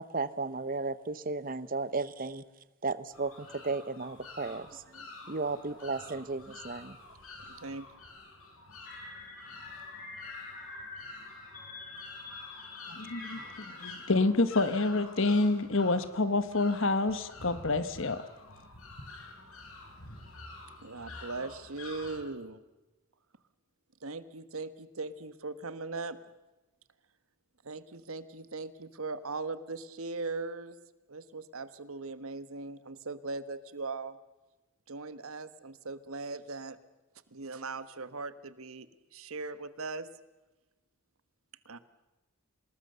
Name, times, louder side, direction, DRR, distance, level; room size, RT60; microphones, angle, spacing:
voice 1, 0.0-2.4 2.8-7.0, right 3 dB, 40° right, 15 dB, 0.9 m, -35 dB
sound 1, 3.1-22.2, left 3 dB, 75° left, 4.8 m, -49 dB
voice 2, 7.5-7.9 20.8-22.6 24.0-26.2 27.6-30.8 31.1-34.2 34.9-36.8 37.3-40.1 41.6-41.8, right 3 dB, 75° right, 13 dB, 1.3 m, -39 dB
sound 2, 8.8-13.9, left 3 dB, 40° left, 4.6 m, -46 dB
voice 3, 12.9-13.4 13.8-18.2, left 3 dB, 60° left, 12 dB, 1.2 m, -28 dB
26.0 x 20.0 x 6.8 m, 1.1 s
head